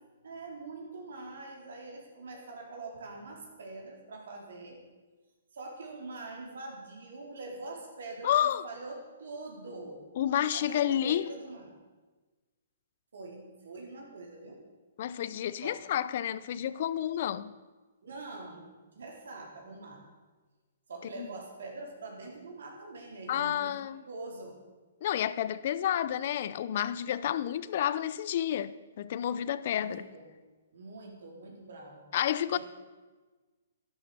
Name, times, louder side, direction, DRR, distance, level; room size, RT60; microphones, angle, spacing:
voice 1, 0.2-4.8 5.5-10.0 10.5-11.7 13.1-14.6 15.6-15.8 18.0-18.7 18.9-20.0 20.9-24.6 29.7-30.3 30.7-32.0 32.5-32.6, right 3 dB, 75° right, 4.4 m, -44 dB
voice 2, 8.2-8.6 10.2-11.3 15.0-17.5 21.1-21.3 23.3-24.0 25.0-30.0 32.1-32.6, left 10 dB, 50° left, 0.6 m, -30 dB
12.0 x 11.5 x 7.0 m
hypercardioid pair, 145°, 0 cm